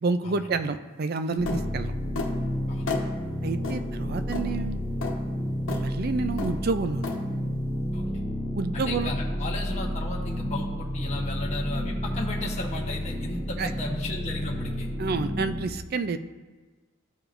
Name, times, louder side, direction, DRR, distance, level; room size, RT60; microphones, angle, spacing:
voice 1, 0.0-1.9 3.4-4.8 5.7-7.1 8.5-9.1 13.6-13.7 15.0-16.2, right 4 dB, 45° right, 10 dB, 0.4 m, -29 dB
sound 1, 1.4-15.6, equal, 10° right, 1.2 m, -31 dB
sound 2, 1.5-1.6 2.1-2.3 2.9-3.1 3.6-3.8 4.3-4.5 5.0-5.1 5.7-5.8 6.4-6.6 7.0-7.2, left 3 dB, 75° left, 1.1 m, -31 dB
voice 2, 8.7-14.9, left 2 dB, 35° left, -3 dB, 1.1 m, -34 dB
13.5 x 4.8 x 2.6 m, 1.3 s
head